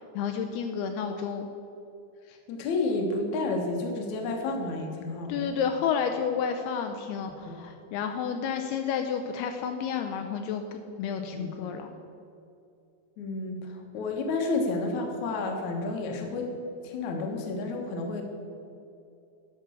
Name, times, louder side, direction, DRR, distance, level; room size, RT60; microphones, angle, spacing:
voice 1, 0.2-1.5 5.3-11.9, left 7 dB, 80° left, 5 dB, 2.5 m, -31 dB
voice 2, 2.3-5.6 7.5-7.6 11.2-11.5 13.2-16.5 16.8-18.2, left 3 dB, 60° left, 2 dB, 2.1 m, -31 dB
11.5 x 6.2 x 7.0 m, 2.6 s
omnidirectional pair, 4.7 m